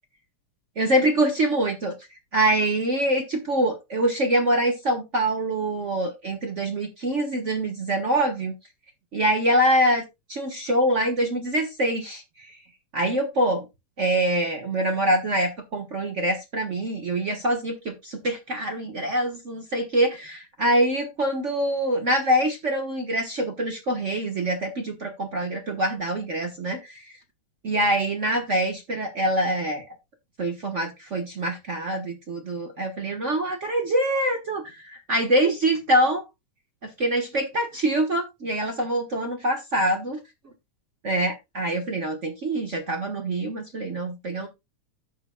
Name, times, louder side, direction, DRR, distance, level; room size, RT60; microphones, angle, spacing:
voice 1, 0.8-1.9 2.3-8.5 9.1-10.0 10.3-12.6 12.9-13.6 14.0-27.1 27.6-29.8 30.4-36.2 36.8-40.2 41.0-44.5, right 1 dB, 85° right, 4 dB, 0.6 m, -25 dB
14.0 x 5.8 x 2.2 m, 0.22 s
omnidirectional pair, 3.5 m